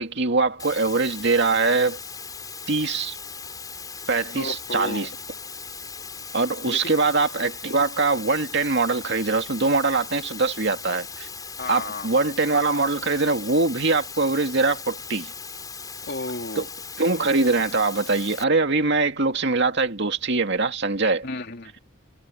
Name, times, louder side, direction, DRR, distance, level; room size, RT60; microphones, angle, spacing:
voice 1, 0.0-2.0 2.7-3.2 4.1-5.1 6.3-11.3 11.7-15.3 16.6-16.7 17.0-21.3, right 3 dB, 55° right, 2.3 m, -23 dB
sound 1, 0.6-18.4, left 5 dB, 20° left, 6.8 m, -38 dB
voice 2, 4.3-5.1 6.7-6.9 11.6-12.1 16.0-16.7 21.2-21.8, left 2 dB, 50° left, 3.0 m, -33 dB
head